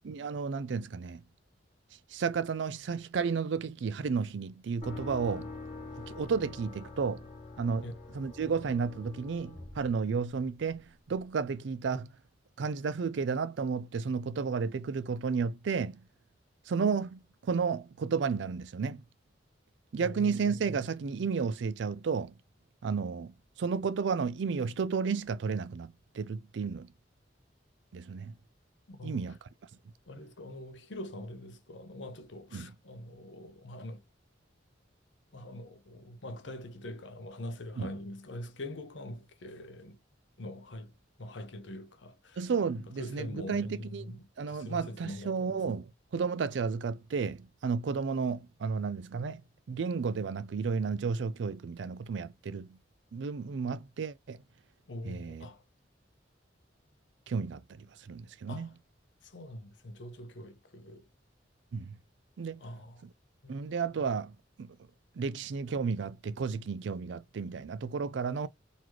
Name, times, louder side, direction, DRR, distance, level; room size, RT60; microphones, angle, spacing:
voice 1, 0.0-1.2 2.1-5.5 6.1-7.3 7.6-7.8 8.1-12.1 12.6-16.0 16.7-19.0 19.9-22.4 22.8-26.9 27.9-28.3 29.0-29.4 32.5-32.7 37.8-37.9 42.4-44.1 44.4-45.8 46.1-49.4 49.7-52.8 53.1-54.4 55.1-55.4 57.3-58.7 61.7-62.0 62.4-62.6 63.5-64.8 65.2-68.5, right 5 dB, 75° right, 0.4 m, -32 dB
sound 1, 4.8-10.7, left 3 dB, 25° left, 1.7 m, -45 dB
voice 2, 20.0-20.8 28.9-29.4 30.1-34.0 35.3-40.0 40.4-42.5 42.7-45.7 54.9-55.6 58.5-58.8 59.2-61.1 62.6-63.1 63.4-63.6, left 1 dB, 80° left, 0.8 m, -44 dB
4.0 x 3.1 x 2.9 m
head